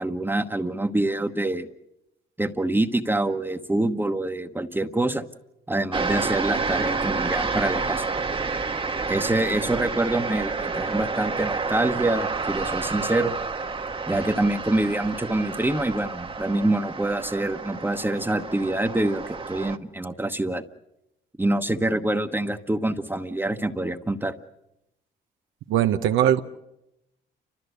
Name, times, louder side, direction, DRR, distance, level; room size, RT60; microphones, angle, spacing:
voice 1, 0.0-1.7 2.4-5.2 5.7-8.0 9.1-13.3 14.1-20.6 21.4-24.4, right 1 dB, 10° right, 6 dB, 1.1 m, -25 dB
sound 1, 5.9-19.8, right 4 dB, 25° right, 1.2 m, -29 dB
voice 2, 25.7-26.4, right 10 dB, 85° right, 6 dB, 0.8 m, -20 dB
29.0 x 13.5 x 8.1 m, 0.89 s
cardioid pair, 90°, 20 cm